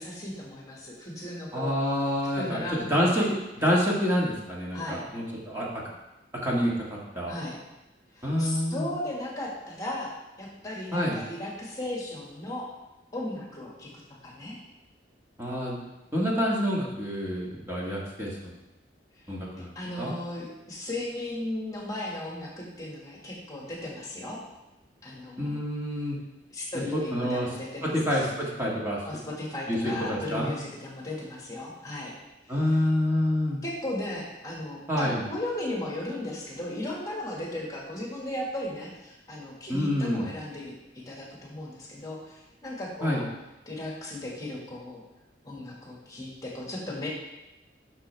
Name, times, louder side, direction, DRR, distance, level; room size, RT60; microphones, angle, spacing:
voice 1, 0.0-1.8 2.4-3.3 4.7-5.0 7.3-7.6 8.2-10.1 10.4-12.7 13.1-13.9 14.2-14.6 19.2-19.3 19.8-24.4 25.0-25.6 26.5-28.3 29.1-32.1 32.4-32.6 33.6-43.3 43.7-45.0 45.4-47.1, left 1 dB, 20° left, -3 dB, 1.8 m, -36 dB
voice 2, 1.5-5.8 6.4-7.3 8.2-9.0 10.9-11.2 15.4-15.8 16.1-18.5 19.3-20.1 25.4-26.2 26.9-27.5 27.8-29.0 29.7-30.5 32.5-33.6 34.9-35.2 39.7-40.3 43.0-43.2, equal, 15° right, -5 dB, 1.6 m, -27 dB
11.5 x 6.2 x 3.4 m, 0.98 s
head